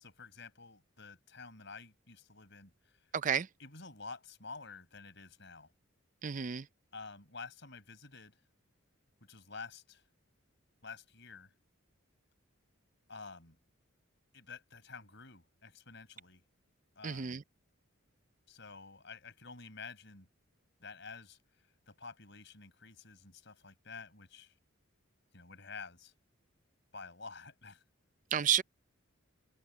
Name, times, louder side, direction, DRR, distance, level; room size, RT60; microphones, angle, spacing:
voice 1, 0.0-3.0 3.6-5.7 6.9-8.4 9.3-10.0 10.8-11.5 13.1-13.6 14.3-16.4 17.0-17.4 18.5-20.3 20.8-21.4 21.9-24.5 25.3-26.1 26.9-27.8, left 4 dB, 55° left, 5.7 m, -50 dB
voice 2, 3.1-3.5 6.2-6.6 17.0-17.4 28.3-28.6, right 8 dB, 40° right, 0.4 m, -31 dB
head